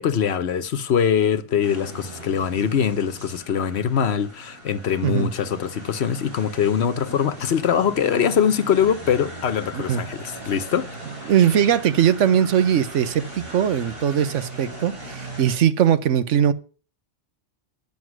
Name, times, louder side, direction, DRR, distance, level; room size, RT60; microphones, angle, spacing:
voice 1, 0.0-10.9 11.2-11.3, left 8 dB, 65° left, 1.0 m, -22 dB
sound 1, 1.6-15.6, right 2 dB, 50° right, 4.8 m, -39 dB
voice 2, 11.3-16.5, right 9 dB, 85° right, 1.1 m, -20 dB
9.6 x 7.2 x 6.0 m
omnidirectional pair, 1.2 m